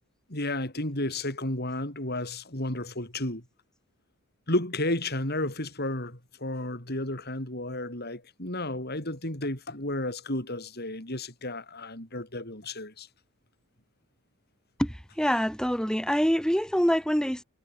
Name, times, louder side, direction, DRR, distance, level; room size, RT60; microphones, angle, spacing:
voice 1, 0.3-3.4 4.5-13.1, left 1 dB, 45° left, 6.6 m, -32 dB
voice 2, 14.8-17.4, equal, 5° left, 5.6 m, -25 dB
head